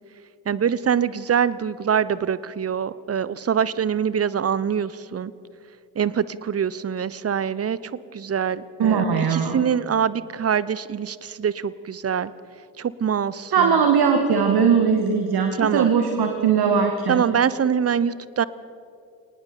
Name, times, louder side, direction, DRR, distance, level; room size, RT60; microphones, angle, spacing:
voice 1, 0.5-5.3 6.0-7.8 8.1-12.3 12.8-13.8 15.6-15.9 17.1-18.4, right 7 dB, 30° right, 18 dB, 0.9 m, -24 dB
voice 2, 8.8-9.7 13.5-17.2, right 6 dB, 50° right, 5 dB, 2.1 m, -20 dB
24.5 x 19.0 x 7.0 m, 2.4 s
figure-of-eight pair, 45°, 47 cm